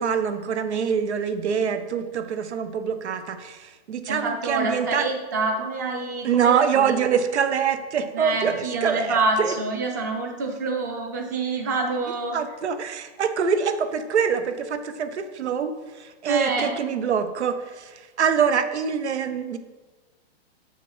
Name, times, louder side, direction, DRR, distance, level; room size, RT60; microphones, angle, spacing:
voice 1, 0.0-5.0 6.2-9.5 12.3-19.6, right 7 dB, 85° right, 10 dB, 1.1 m, -25 dB
voice 2, 4.1-7.2 8.1-12.4 16.3-16.7, right 3 dB, 15° right, 3 dB, 0.6 m, -27 dB
7.5 x 6.5 x 5.6 m, 1.3 s
hypercardioid pair, 180°, 33 cm